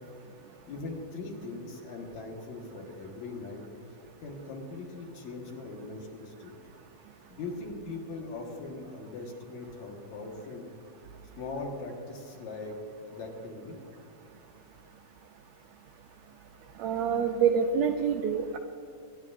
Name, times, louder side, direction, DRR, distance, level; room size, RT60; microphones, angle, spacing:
voice 1, 0.7-3.7 4.2-6.5 7.3-10.7 11.4-12.8 13.1-13.8, left 3 dB, 65° left, 0 dB, 2.6 m, -40 dB
voice 2, 16.8-18.6, right 7 dB, 90° right, 5 dB, 1.5 m, -26 dB
23.5 x 10.5 x 2.5 m, 2.6 s
omnidirectional pair, 3.7 m